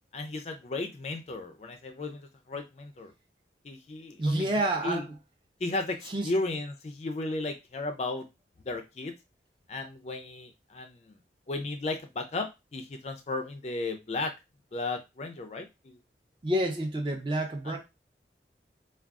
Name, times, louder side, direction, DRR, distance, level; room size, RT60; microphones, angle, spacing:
voice 1, 0.1-3.1 3.6-4.5 4.8-5.0 5.6-8.3 8.7-9.1 9.7-11.2 11.5-14.3 14.7-16.0 17.7-17.8, left 2 dB, 40° left, 6 dB, 0.4 m, -35 dB
voice 2, 4.2-5.1 6.1-6.3 16.4-17.8, right 1 dB, 25° right, 3 dB, 0.6 m, -28 dB
2.3 x 2.2 x 3.5 m, 0.24 s
head